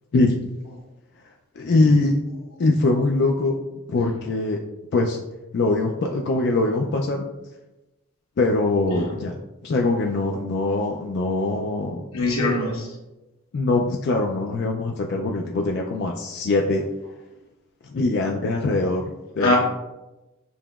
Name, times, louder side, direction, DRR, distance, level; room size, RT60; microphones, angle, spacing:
voice 1, 1.6-2.2 2.6-3.6 3.9-4.6 4.9-5.2 5.5-7.3 8.4-12.1 13.5-16.9 17.9-19.6, left 2 dB, 55° left, 1 dB, 0.3 m, -22 dB
voice 2, 12.1-12.9 19.4-19.6, left 2 dB, 75° left, -2 dB, 1.2 m, -22 dB
6.9 x 2.9 x 2.3 m, 1.0 s
head